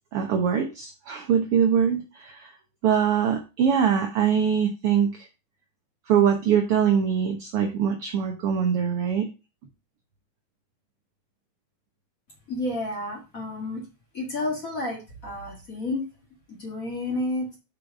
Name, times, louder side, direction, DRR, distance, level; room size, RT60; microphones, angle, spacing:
voice 1, 0.1-2.5 2.8-5.3 6.1-9.3, right 7 dB, 85° right, 1.2 m, -23 dB
voice 2, 12.5-13.9 14.1-16.1 16.5-17.6, left 2 dB, 30° left, 2.0 m, -31 dB
5.2 x 5.1 x 5.8 m
omnidirectional pair, 3.7 m